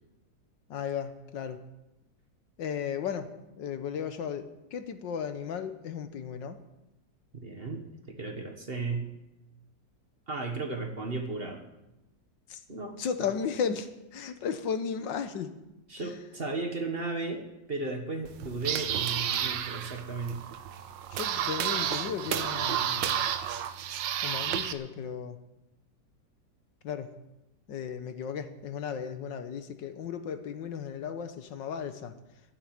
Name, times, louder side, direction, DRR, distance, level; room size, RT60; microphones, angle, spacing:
voice 1, 0.7-1.6 2.6-6.6 12.5-12.6 13.0-15.5 16.0-16.2 21.1-23.3 24.2-25.4 26.8-27.1 27.7-32.1, left 7 dB, 80° left, 9 dB, 1.7 m, -35 dB
voice 2, 7.4-9.1 10.3-11.6 12.7-13.0 15.9-20.4, right 3 dB, 35° right, 4 dB, 1.6 m, -35 dB
sound 1, 18.2-24.7, right 10 dB, 80° right, 1.5 m, -31 dB
14.5 x 7.7 x 9.6 m, 0.96 s
omnidirectional pair, 2.0 m